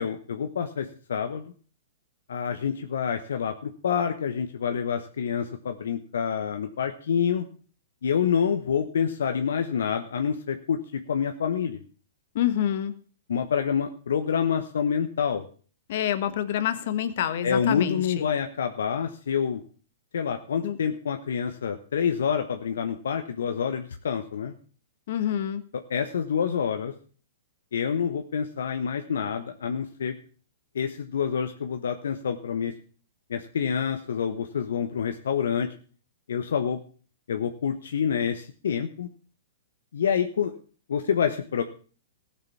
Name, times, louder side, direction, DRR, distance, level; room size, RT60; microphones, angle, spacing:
voice 1, 0.0-1.4 2.3-7.5 8.0-11.8 13.3-15.5 17.4-19.6 20.1-24.5 25.9-26.9 27.7-30.1 30.7-32.7 33.3-35.7 36.3-36.8 37.3-39.1 39.9-40.5 40.9-41.6, left 7 dB, 75° left, 6 dB, 1.1 m, -27 dB
voice 2, 12.3-12.9 15.9-18.3 20.6-20.8 25.1-25.6, left 10 dB, 60° left, 11 dB, 1.4 m, -27 dB
15.0 x 6.8 x 6.9 m, 0.41 s
hypercardioid pair, 125°, 0 cm